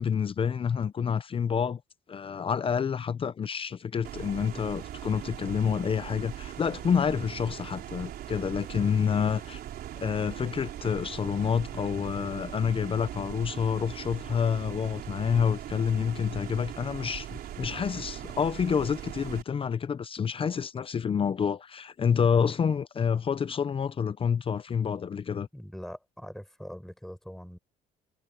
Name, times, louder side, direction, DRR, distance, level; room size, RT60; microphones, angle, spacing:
voice 1, 0.0-1.8 2.1-9.6 10.0-25.5, left 7 dB, 30° left, 0.7 m, -28 dB
sound 1, 4.0-19.4, right 11 dB, 65° right, 4.2 m, -40 dB
voice 2, 25.5-27.6, equal, ahead, 6.6 m, -42 dB
cardioid pair, 110°, 17 cm